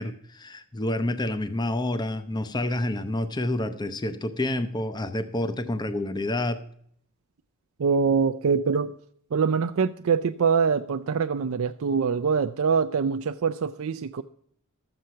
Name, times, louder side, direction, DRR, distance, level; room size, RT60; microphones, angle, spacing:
voice 1, 0.0-6.6, left 1 dB, 20° left, 0.6 m, -28 dB
voice 2, 7.8-9.0 9.3-14.2, right 5 dB, 65° right, 0.4 m, -24 dB
13.0 x 7.8 x 5.6 m
head